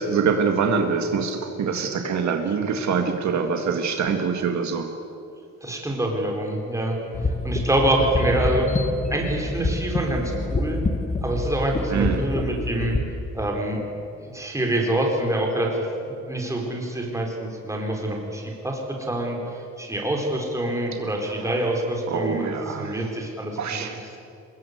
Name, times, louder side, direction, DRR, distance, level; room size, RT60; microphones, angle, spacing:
voice 1, 0.0-4.9 11.9-12.2 21.4-21.5 22.1-23.0 23.6-24.0, right 5 dB, 70° right, 5 dB, 2.1 m, -24 dB
voice 2, 5.6-7.0 7.4-8.7 9.1-10.8 11.2-13.0 13.3-13.8 14.2-23.8, right 1 dB, 10° right, 1 dB, 4.1 m, -26 dB
sound 1, 7.1-13.0, left 2 dB, 25° left, 1.8 m, -27 dB
24.5 x 21.0 x 8.2 m, 2.7 s
wide cardioid pair, 150°, 29 cm